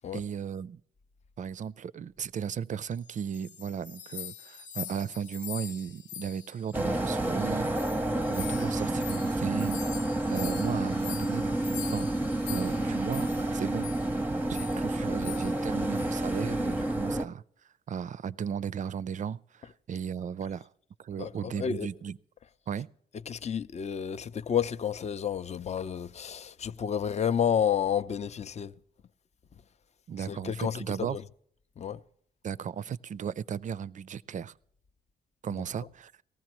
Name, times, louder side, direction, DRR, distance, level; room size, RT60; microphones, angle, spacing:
voice 1, 0.1-0.8 1.4-12.1 12.5-13.9 14.5-17.4 17.9-20.7 21.0-22.2 22.7-22.9 30.1-31.2 32.4-34.5 35.4-36.1, right 7 dB, 45° right, 0.4 m, -36 dB
sound 1, 3.1-7.3 7.6-13.5 13.8-14.1 14.5-14.9 15.2-15.7 16.0-16.2 16.7-16.9, left 10 dB, 85° left, 0.5 m, -44 dB
sound 2, 6.7-17.3, right 1 dB, 10° right, 0.7 m, -30 dB
voice 2, 21.2-21.9 23.3-28.7 30.2-31.2 31.8-32.0 35.5-35.6, left 8 dB, 35° left, 0.5 m, -30 dB
18.5 x 14.5 x 3.0 m
supercardioid pair, 50°, 19 cm